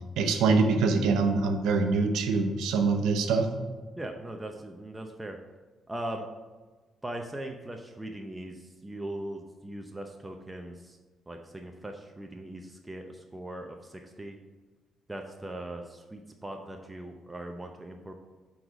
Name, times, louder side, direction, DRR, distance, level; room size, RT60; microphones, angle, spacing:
voice 1, 0.2-3.5, right 4 dB, 85° right, 6 dB, 0.8 m, -24 dB
voice 2, 4.0-5.4 5.9-6.3 7.0-11.0 11.3-14.4 15.1-18.1, right 1 dB, 10° right, 3 dB, 0.7 m, -40 dB
7.6 x 4.1 x 4.9 m, 1.3 s
cardioid pair, 90°, 0 cm